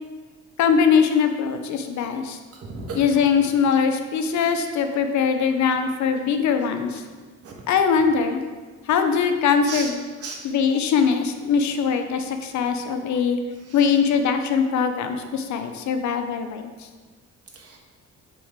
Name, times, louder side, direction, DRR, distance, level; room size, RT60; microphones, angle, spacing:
voice 1, 0.6-2.4 3.0-7.0 7.7-8.4 8.9-10.0 10.4-13.4 13.7-16.7, left 6 dB, 75° left, 7 dB, 0.7 m, -21 dB
voice 2, 2.5-3.4 6.0-6.2 7.4-7.5 9.7-9.9 10.2-10.4 13.6-14.0 17.5-17.8, right 3 dB, 55° right, 0 dB, 1.3 m, -36 dB
6.5 x 5.7 x 3.7 m, 1.4 s
cardioid pair, 110°, 30 cm